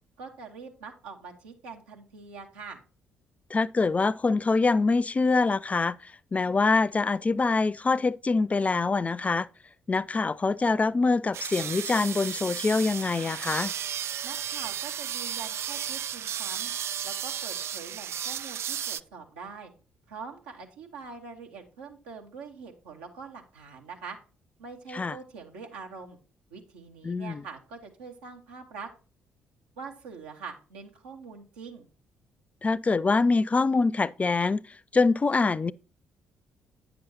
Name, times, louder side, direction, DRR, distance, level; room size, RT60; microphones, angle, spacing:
voice 1, 0.2-2.8 14.2-16.7 17.0-19.7 20.1-24.2 24.6-26.2 26.5-28.9 29.8-31.9, right 5 dB, 75° right, 1.4 m, -44 dB
voice 2, 3.5-9.5 9.9-13.7 24.9-25.2 27.0-27.4 32.6-35.7, left 3 dB, 25° left, 0.3 m, -25 dB
sound 1, 11.3-19.0, right 9 dB, 50° right, 0.3 m, -34 dB
9.3 x 6.9 x 2.8 m
figure-of-eight pair, 45°, 6 cm